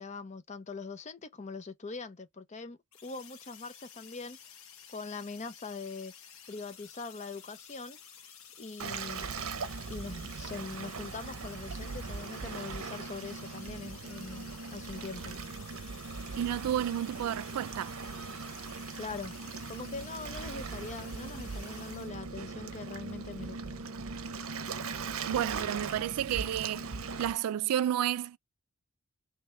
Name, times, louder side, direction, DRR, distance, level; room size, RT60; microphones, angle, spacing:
voice 1, 0.0-4.4 4.9-6.1 6.5-8.0 8.6-9.2 9.9-15.4 19.0-19.4 19.7-23.9, left 4 dB, 30° left, 0.6 m, -42 dB
sound 1, 2.9-22.1, left 8 dB, 65° left, 1.0 m, -52 dB
Waves surf, 8.8-27.3, right 4 dB, 65° right, 0.7 m, -40 dB
voice 2, 16.4-17.9 25.3-26.9 27.2-28.4, right 10 dB, 90° right, 0.3 m, -31 dB
3.4 x 3.3 x 3.3 m
head